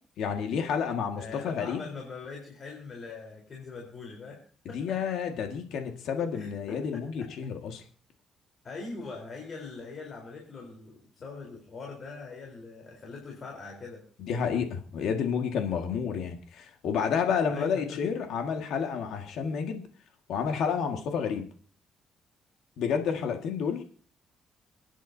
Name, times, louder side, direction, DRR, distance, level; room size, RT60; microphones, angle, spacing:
voice 1, 0.2-1.9 4.7-7.8 14.2-19.8 20.3-21.5 22.8-23.8, left 6 dB, 80° left, 4 dB, 1.8 m, -30 dB
voice 2, 1.2-5.0 6.3-7.5 8.6-14.0 17.5-18.0, left 4 dB, 45° left, 0 dB, 4.0 m, -42 dB
28.0 x 10.0 x 2.8 m, 0.43 s
cardioid pair, 90°, 0 cm